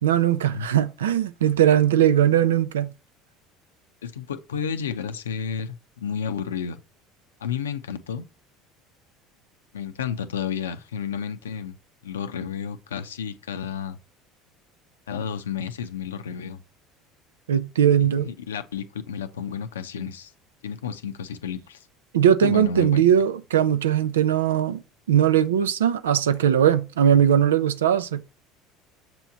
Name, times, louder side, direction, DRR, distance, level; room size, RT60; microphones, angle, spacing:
voice 1, 0.0-2.9 17.5-18.3 22.1-24.8 25.1-28.2, right 9 dB, 85° right, 0.5 m, -20 dB
voice 2, 4.0-6.8 7.4-8.2 9.7-11.7 12.0-14.0 15.1-16.6 18.0-20.3 20.6-21.8 22.4-23.0, left 7 dB, 85° left, 0.6 m, -31 dB
6.9 x 3.0 x 5.9 m
hypercardioid pair, 70°, 0 cm